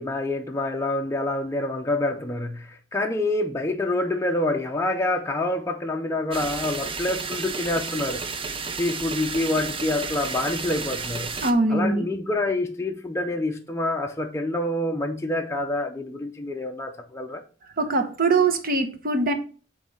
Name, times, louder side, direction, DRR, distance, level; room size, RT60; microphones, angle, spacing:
voice 1, 0.0-8.2 8.8-11.3 11.7-17.4, left 2 dB, 15° left, 0.5 m, -27 dB
sound 1, 6.3-11.5, right 5 dB, 30° right, 0.6 m, -32 dB
voice 2, 11.4-12.1 17.8-19.3, right 3 dB, 50° right, 1.0 m, -22 dB
8.2 x 3.2 x 5.5 m
head